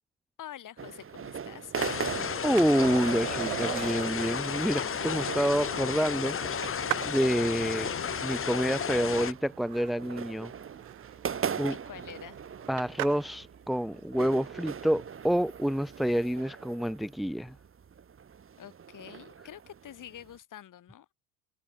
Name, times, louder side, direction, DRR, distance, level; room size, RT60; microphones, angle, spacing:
voice 1, 0.4-1.8 11.7-12.4 18.6-21.1, left 11 dB, 45° left, 5.5 m, -47 dB
sound 1, 0.8-20.4, right 7 dB, 30° right, 2.6 m, -41 dB
sound 2, 1.7-9.3, left 7 dB, 30° left, 2.0 m, -33 dB
voice 2, 2.4-7.9 8.2-10.5 11.6-11.7 12.7-17.5, equal, ahead, 1.3 m, -28 dB
Skateboard, 2.6-13.4 16.0-16.1, right 24 dB, 75° right, 5.3 m, -40 dB
hypercardioid pair, 75°, 43 cm